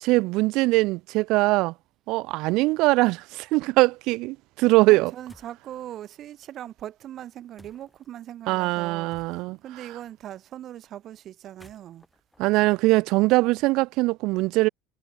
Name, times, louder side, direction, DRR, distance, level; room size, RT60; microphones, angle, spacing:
voice 1, 0.0-1.7 2.1-5.1 8.5-9.6 12.4-14.7, right 22 dB, 60° right, 0.3 m, -22 dB
voice 2, 4.9-12.1, right 11 dB, 40° right, 1.8 m, -40 dB
sound 1, 5.3-5.7 7.6-8.1 9.1-9.7 11.4-13.4, left 1 dB, 5° left, 4.1 m, -56 dB
supercardioid pair, 135°, 0 cm